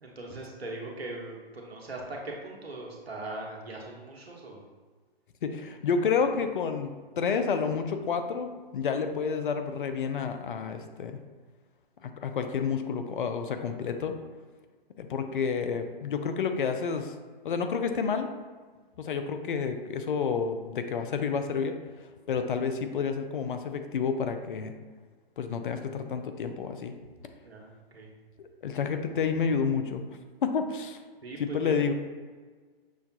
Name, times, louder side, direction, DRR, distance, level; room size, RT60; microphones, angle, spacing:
voice 1, 0.0-4.6 27.4-28.1 31.2-31.8, right 2 dB, 90° right, -1 dB, 1.0 m, -40 dB
voice 2, 5.4-11.2 12.0-14.1 15.0-17.1 17.4-18.3 19.0-24.7 25.4-26.9 28.4-30.0 30.4-31.0 31.4-31.9, left 6 dB, 60° left, 7 dB, 0.5 m, -30 dB
6.3 x 2.2 x 2.7 m, 1.5 s
figure-of-eight pair, 135°, 30 cm